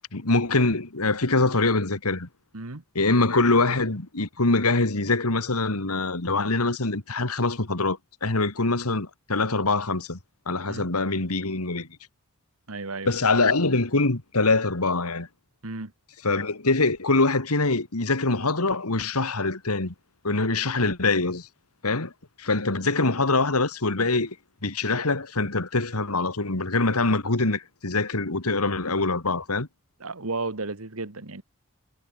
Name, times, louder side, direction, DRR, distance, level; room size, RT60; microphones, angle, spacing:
voice 1, 0.1-2.3 3.0-10.2 10.5-11.9 13.1-15.3 16.2-19.9 20.2-21.5 21.8-22.1 22.4-24.4 24.6-29.7, left 3 dB, 90° left, 2.4 m, -24 dB
voice 2, 12.7-13.1 15.6-15.9 30.0-31.4, right 3 dB, 75° right, 1.8 m, -33 dB
head